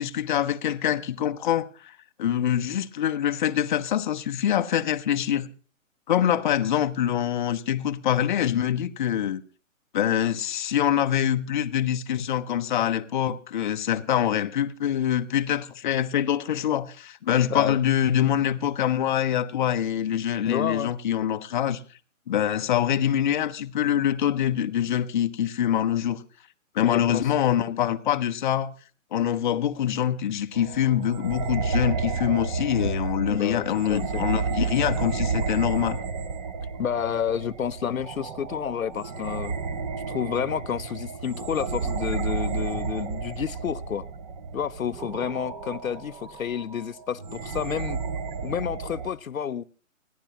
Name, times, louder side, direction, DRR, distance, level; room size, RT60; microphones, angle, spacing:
voice 1, 0.0-5.5 6.1-9.4 9.9-21.8 22.3-26.2 26.7-28.7 29.1-36.0, left 10 dB, 35° left, 0.7 m, -25 dB
voice 2, 20.5-20.9 26.8-27.3 33.3-34.2 36.8-39.5 40.1-44.0 44.5-48.0 48.4-49.6, left 8 dB, 80° left, 0.7 m, -30 dB
sound 1, 30.5-49.1, right 5 dB, 30° right, 1.1 m, -31 dB
29.0 x 10.5 x 2.9 m
figure-of-eight pair, 140°, 40 cm